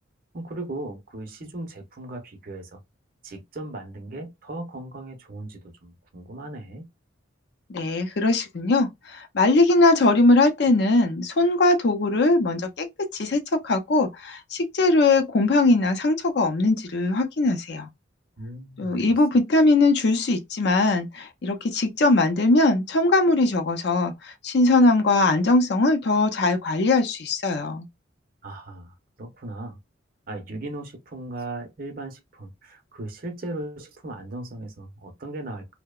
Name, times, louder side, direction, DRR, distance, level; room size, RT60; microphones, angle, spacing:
voice 1, 0.3-2.8 3.2-6.9 18.4-19.0 28.4-29.8 30.3-35.7, right 2 dB, 45° right, 0.6 m, -37 dB
voice 2, 7.7-17.9 18.8-27.8, left 2 dB, 55° left, 0.5 m, -21 dB
2.7 x 2.0 x 2.3 m
head